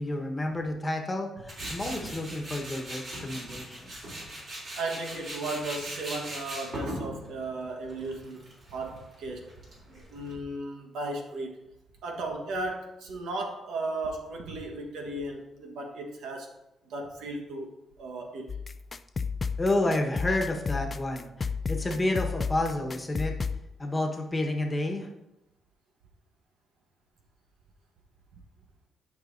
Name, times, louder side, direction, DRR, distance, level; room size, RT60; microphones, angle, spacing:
voice 1, 0.0-4.0 19.6-23.3 23.8-25.1, left 1 dB, 20° left, 2 dB, 1.3 m, -30 dB
Tools, 1.5-10.3, right 1 dB, 50° right, 3.0 m, -40 dB
voice 2, 1.6-2.1 4.8-9.6 9.9-11.6 12.0-16.5 16.8-17.7 18.0-18.5, right 2 dB, 90° right, 2 dB, 1.3 m, -36 dB
sound 1, 18.5-23.6, left 5 dB, 35° left, 0.3 m, -33 dB
11.5 x 5.5 x 2.7 m, 0.89 s
cardioid pair, 105°, 0 cm